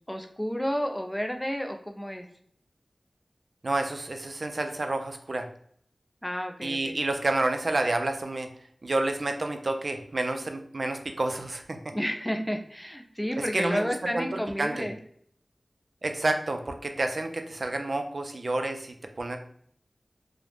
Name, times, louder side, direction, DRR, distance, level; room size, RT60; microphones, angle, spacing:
voice 1, 0.1-2.2 6.2-7.0 11.9-15.0, equal, 10° left, 4 dB, 0.4 m, -31 dB
voice 2, 3.6-5.5 6.6-8.5 8.8-11.8 13.4-14.9 16.0-19.4, right 2 dB, 60° right, 5 dB, 0.4 m, -29 dB
2.3 x 2.0 x 3.2 m, 0.63 s
wide cardioid pair, 60°, 0 cm